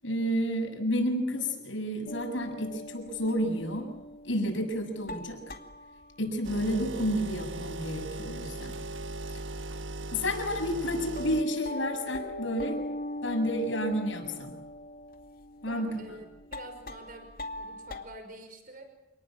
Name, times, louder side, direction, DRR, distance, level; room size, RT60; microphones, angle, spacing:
voice 1, 0.0-3.9 4.2-5.4 6.2-8.8 10.1-12.8 13.2-14.5 15.6-15.9, equal, 75° left, 4 dB, 7.2 m, -30 dB
sound 1, 2.1-8.1 8.3-9.3 9.6-9.7 10.3-10.4 10.8-18.0, left 1 dB, 50° left, 2.3 m, -41 dB
sound 2, 6.4-11.4, right 2 dB, 75° right, 1.3 m, -38 dB
voice 2, 15.6-16.3 16.5-17.3 17.6-18.9, right 2 dB, 45° right, 7 dB, 5.5 m, -47 dB
29.0 x 19.5 x 8.8 m, 1.0 s
head